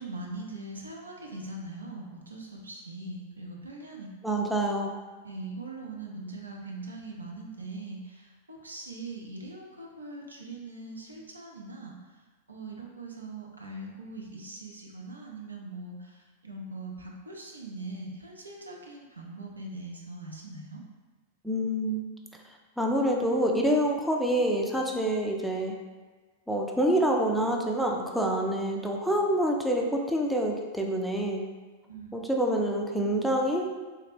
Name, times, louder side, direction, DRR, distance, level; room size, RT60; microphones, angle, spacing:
voice 1, 0.0-4.4 5.2-12.0 12.5-20.8 31.9-32.3, right 2 dB, 80° right, -1 dB, 0.6 m, -41 dB
voice 2, 4.2-5.0 21.4-22.1 22.8-25.7 26.5-31.4 32.1-33.7, right 1 dB, ahead, 0 dB, 0.4 m, -27 dB
3.4 x 2.8 x 3.0 m, 1.3 s
figure-of-eight pair, 95°, 0 cm